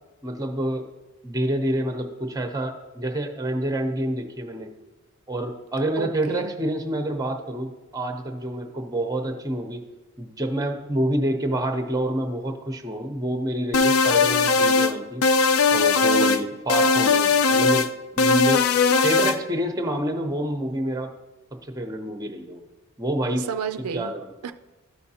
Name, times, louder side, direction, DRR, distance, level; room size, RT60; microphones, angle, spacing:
voice 1, 0.2-0.9 1.2-4.7 5.3-9.8 10.2-15.2 15.7-18.7 19.0-21.1 21.5-22.6 23.0-23.5 23.9-24.3, right 1 dB, 15° right, 5 dB, 0.7 m, -28 dB
voice 2, 6.0-6.5 18.9-19.0 23.3-24.1 24.4-24.5, right 6 dB, 85° right, 9 dB, 0.4 m, -31 dB
sound 1, 13.7-14.9 15.2-16.4 16.7-17.9 18.2-19.4, left 4 dB, 70° left, 0.4 m, -19 dB
12.5 x 5.7 x 2.8 m, 1.1 s
head